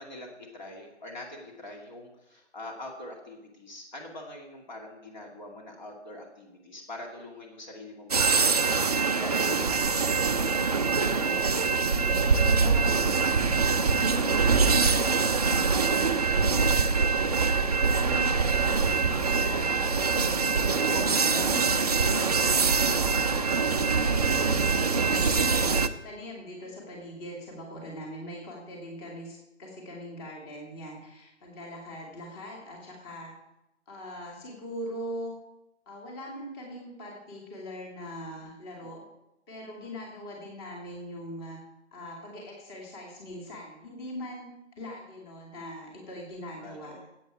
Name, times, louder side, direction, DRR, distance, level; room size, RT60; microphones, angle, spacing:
voice 1, 0.0-8.8 9.2-9.9 19.7-20.6 20.9-21.6 38.8-39.0 46.6-47.1, left 1 dB, 40° left, 1 dB, 2.4 m, -43 dB
sound 1, 8.1-25.9, right 5 dB, 35° right, 0.5 m, -24 dB
voice 2, 10.8-11.4 11.8-13.7 14.2-16.9 17.3-19.8 20.2-23.7 24.0-33.3 33.9-35.3 35.9-39.0 39.5-41.6 41.9-44.5 44.8-46.9, equal, 20° left, -1 dB, 2.4 m, -41 dB
15.5 x 8.4 x 4.7 m, 0.90 s
figure-of-eight pair, 140°, 35 cm